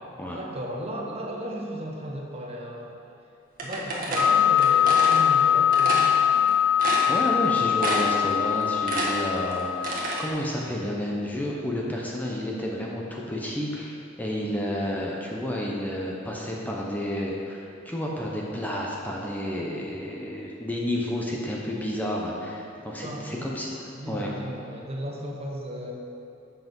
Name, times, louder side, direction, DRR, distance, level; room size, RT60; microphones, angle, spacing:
voice 1, 0.0-2.9 3.6-6.5 22.8-23.4 23.9-25.9, equal, 30° right, -1 dB, 1.0 m, -35 dB
sound 1, 3.6-5.2 5.7-6.1 6.5-6.6 6.8-7.5 7.8-8.2 8.6-10.2, right 2 dB, 45° right, 1.4 m, -29 dB
sound 2, 4.2-10.3, left 9 dB, 80° left, 0.7 m, -22 dB
voice 2, 7.0-23.7 24.1-24.3, left 1 dB, 10° left, -3 dB, 0.7 m, -30 dB
7.6 x 5.8 x 5.4 m, 2.6 s
head